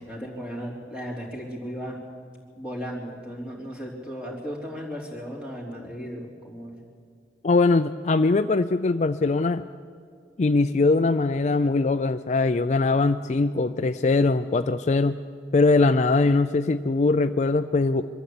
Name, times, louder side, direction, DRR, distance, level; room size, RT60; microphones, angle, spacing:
voice 1, 0.0-2.0 2.6-6.7, equal, 5° right, -3 dB, 3.6 m, -35 dB
voice 2, 7.4-9.7 10.4-15.2 15.5-18.1, left 3 dB, 40° left, 10 dB, 0.4 m, -21 dB
23.0 x 13.0 x 8.5 m, 2.1 s
head